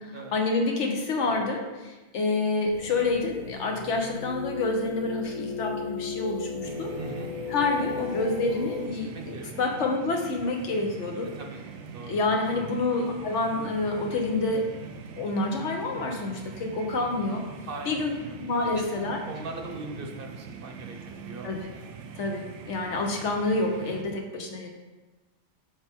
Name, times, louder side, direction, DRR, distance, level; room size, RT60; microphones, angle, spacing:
voice 1, 0.3-6.9 7.5-11.3 12.1-14.7 15.2-17.4 17.9-18.1 18.4-19.2 21.4-21.6 22.2-24.7, left 3 dB, 80° left, 2 dB, 1.2 m, -28 dB
sound 1, 2.7-8.9, left 5 dB, 50° left, 0.6 m, -36 dB
sound 2, 6.6-24.0, right 5 dB, 85° right, 0.9 m, -43 dB
voice 2, 7.0-7.3 8.9-9.9 11.4-11.6 11.9-12.2 12.5-12.7 17.7-18.3 18.7-18.9 19.3-21.5, right 3 dB, 55° right, 3 dB, 0.9 m, -40 dB
7.0 x 5.2 x 3.6 m, 1.2 s
omnidirectional pair, 1.2 m